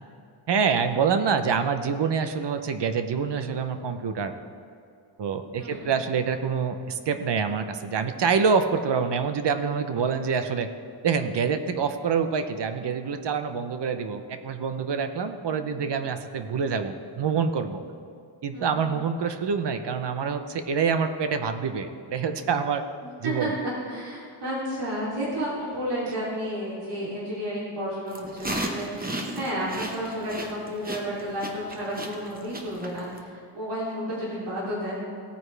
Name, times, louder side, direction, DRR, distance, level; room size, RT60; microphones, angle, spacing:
voice 1, 0.5-4.3 5.2-10.7 11.0-17.8 18.4-22.8 23.2-23.5, right 6 dB, 55° right, 8 dB, 0.8 m, -26 dB
voice 2, 23.0-23.5 23.9-35.0, equal, 90° right, -8 dB, 3.1 m, -32 dB
sound 1, 28.1-33.2, right 1 dB, 20° right, 0.9 m, -34 dB
17.0 x 9.3 x 3.3 m, 2.5 s
wide cardioid pair, 165°, 49 cm